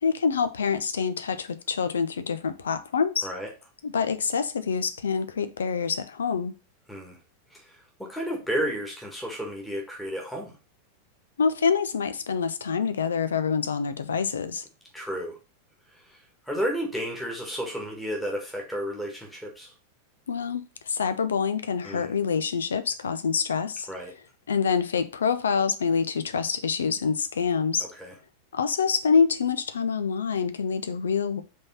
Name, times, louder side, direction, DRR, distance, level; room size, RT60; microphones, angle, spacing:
voice 1, 0.0-3.3 3.8-6.5 11.4-14.6 20.3-23.9 24.5-27.9 28.5-31.4, left 6 dB, 70° left, 0.6 m, -26 dB
voice 2, 7.5-10.6 14.9-15.4 16.0-19.7 21.8-22.1 23.9-24.1 28.0-28.1, equal, 5° left, 1.8 m, -32 dB
5.2 x 3.7 x 5.6 m
figure-of-eight pair, 90°, 0 cm